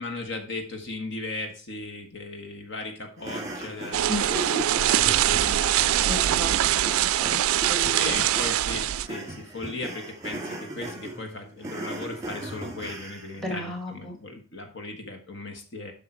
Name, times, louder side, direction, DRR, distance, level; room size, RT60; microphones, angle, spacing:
voice 1, 0.0-4.3 4.9-6.2 7.8-15.9, left 2 dB, 55° left, 4 dB, 1.5 m, -37 dB
sound 1, 3.2-13.4, right 2 dB, 15° right, 2.1 m, -38 dB
sound 2, 3.9-9.1, right 12 dB, 75° right, 0.3 m, -23 dB
voice 2, 4.1-4.8 5.4-5.5 6.1-8.2 13.4-14.2, left 1 dB, ahead, 2 dB, 2.0 m, -34 dB
8.0 x 5.6 x 4.4 m, 0.39 s
head